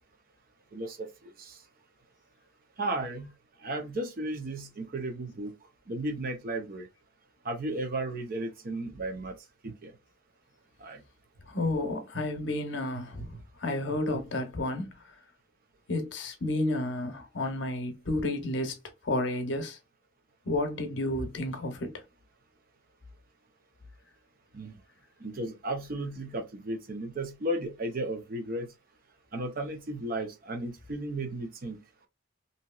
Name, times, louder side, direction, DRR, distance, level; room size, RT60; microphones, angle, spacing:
voice 1, 0.7-1.1 1.4-1.5 2.8-3.3 3.6-5.5 5.9-6.9 7.4-9.3 9.6-9.9 10.8-11.0 12.1-12.2 24.5-24.8 25.2-28.7 29.3-31.8, right 1 dB, 45° right, 0.6 m, -34 dB
voice 2, 11.4-14.9 15.9-18.8 19.0-19.8 20.4-21.9, left 2 dB, 65° left, 0.8 m, -31 dB
2.8 x 2.7 x 2.3 m
head